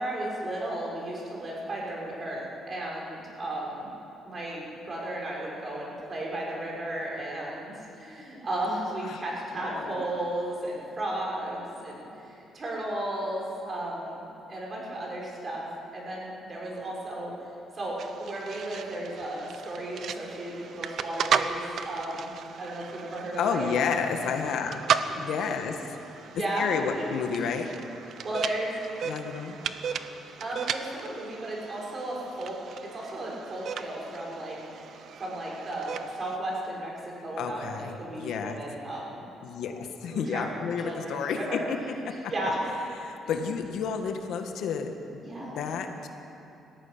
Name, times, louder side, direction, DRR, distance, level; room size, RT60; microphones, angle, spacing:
voice 1, 0.0-3.9 4.2-15.7 15.9-17.3 17.7-22.3 22.6-24.0 25.1-25.7 26.4-27.0 27.4-27.7 28.2-28.8 30.4-32.6 32.8-36.9 37.2-39.2 40.1-40.5 40.8-41.6 42.3-42.6 45.2-45.7, right 1 dB, 35° right, -3 dB, 6.3 m, -34 dB
voice 2, 9.5-10.0 23.4-24.8 25.1-26.0 26.3-27.7 29.0-29.6 37.4-38.6 39.4-42.2 43.0-44.9 45.6-46.1, left 6 dB, 75° left, 5 dB, 1.7 m, -31 dB
sound 1, 18.0-36.4, right 7 dB, 60° right, 0.9 m, -35 dB
18.5 x 14.5 x 9.9 m, 2.9 s
cardioid pair, 115°, 0 cm